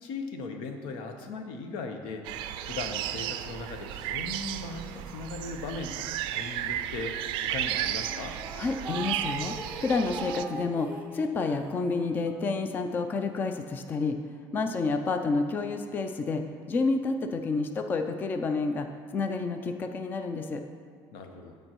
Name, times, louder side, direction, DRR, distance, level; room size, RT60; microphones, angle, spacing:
voice 1, 0.0-2.3 2.6-8.4 21.1-21.6, left 3 dB, 85° left, 5 dB, 0.9 m, -38 dB
sound 1, 2.2-10.4, right 11 dB, 70° right, 0.4 m, -34 dB
sound 2, 4.7-6.0 6.4-6.6 7.2-7.3 7.5-12.3, right 3 dB, 15° right, 0.8 m, -41 dB
voice 2, 8.6-14.2 14.5-18.9 19.1-20.6, left 3 dB, 20° left, 7 dB, 0.3 m, -29 dB
14.0 x 5.2 x 3.0 m, 2.1 s
cardioid pair, 165°, 9 cm